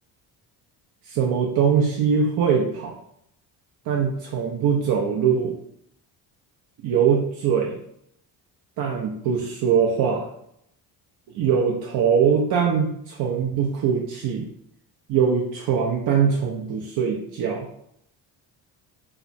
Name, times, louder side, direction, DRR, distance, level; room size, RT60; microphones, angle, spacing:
voice 1, 1.1-3.0 3.9-5.5 6.8-7.8 8.8-10.3 11.3-14.5 15.1-17.7, right 7 dB, 55° right, -1 dB, 0.5 m, -22 dB
2.9 x 2.1 x 2.5 m, 0.73 s
supercardioid pair, 75°, 44 cm